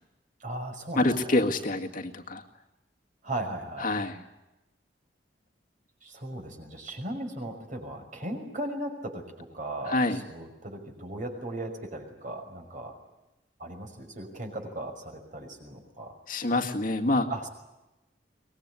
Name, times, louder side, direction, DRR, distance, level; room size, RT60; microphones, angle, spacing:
voice 1, 0.4-1.4 3.2-3.9 6.0-12.9 13.6-16.1 17.3-17.5, right 1 dB, 45° right, 5 dB, 5.8 m, -37 dB
voice 2, 1.0-2.4 3.8-4.2 9.9-10.2 16.3-17.3, left 2 dB, 50° left, 3 dB, 1.9 m, -26 dB
24.0 x 20.0 x 9.7 m, 1.0 s
head